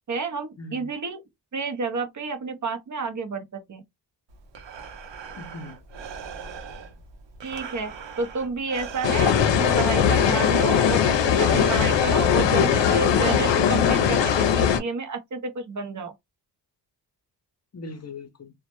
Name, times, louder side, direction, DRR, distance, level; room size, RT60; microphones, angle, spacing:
voice 1, 0.1-1.2 1.5-3.8 7.4-16.1, right 4 dB, 45° right, 0.6 m, -30 dB
voice 2, 0.6-0.9 5.4-5.8 17.7-18.5, left 2 dB, 35° left, 0.6 m, -38 dB
Breathing, 4.3-13.9, right 5 dB, 80° right, 0.7 m, -40 dB
sound 1, 9.0-14.8, left 8 dB, 80° left, 0.6 m, -20 dB
2.1 x 2.0 x 2.9 m
cardioid pair, 85°, 43 cm